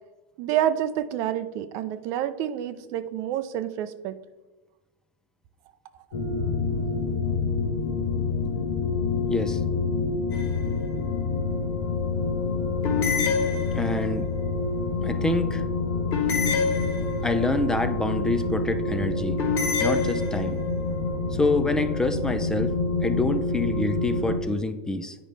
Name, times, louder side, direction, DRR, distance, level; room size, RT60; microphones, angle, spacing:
voice 1, 0.4-4.2, right 11 dB, 50° right, 12 dB, 0.5 m, -28 dB
sound 1, 6.1-24.4, left 3 dB, 70° left, 1.2 m, -27 dB
voice 2, 9.3-9.6 13.7-14.3 15.0-15.6 17.2-19.4 19.8-20.6 21.3-22.7 23.0-25.2, left 2 dB, 10° left, 9 dB, 0.5 m, -26 dB
sound 2, 10.3-10.9 12.8-14.1 16.1-17.4 19.4-20.7, left 5 dB, 45° left, 1.5 m, -27 dB
8.9 x 5.1 x 3.2 m, 1.1 s
hypercardioid pair, 125°, 7 cm